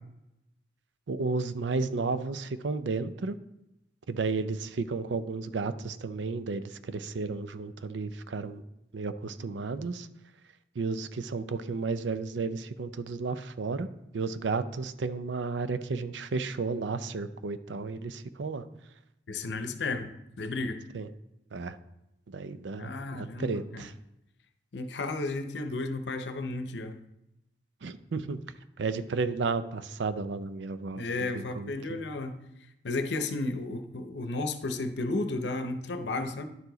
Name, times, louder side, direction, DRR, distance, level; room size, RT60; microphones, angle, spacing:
voice 1, 1.1-3.4 4.1-8.6 8.9-10.1 10.7-13.9 14.1-18.6 20.9-21.1 21.5-21.8 22.3-23.9 27.8-28.4 28.8-32.0, right 4 dB, 90° right, 12 dB, 0.5 m, -33 dB
voice 2, 19.3-20.1 20.4-20.8 22.8-23.8 24.7-27.0 30.9-32.4 32.8-36.4, left 2 dB, 75° left, 9 dB, 0.7 m, -33 dB
11.0 x 4.8 x 3.9 m, 0.85 s
head